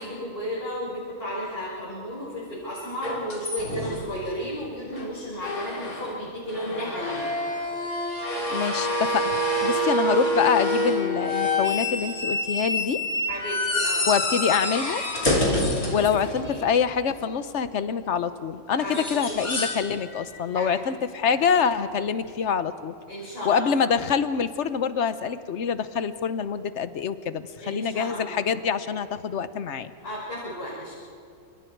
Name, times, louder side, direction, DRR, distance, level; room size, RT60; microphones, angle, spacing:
voice 1, 0.0-7.3 13.3-14.1 15.9-16.0 16.4-16.6 18.8-19.4 20.5-20.9 21.2-21.5 23.1-23.9 27.6-28.5 30.0-30.9, equal, 40° left, -9 dB, 6.4 m, -34 dB
sound 1, 3.0-4.3 4.9-5.1 5.4-6.2 6.5-16.7 18.8-19.8 20.1-20.4 22.2-22.3, left 1 dB, 85° left, 3.9 m, -27 dB
voice 2, 8.5-13.0 14.0-15.0 15.9-22.9 23.4-29.9, left 6 dB, 60° left, 12 dB, 1.2 m, -25 dB
29.0 x 27.5 x 4.7 m, 2.4 s
omnidirectional pair, 1.5 m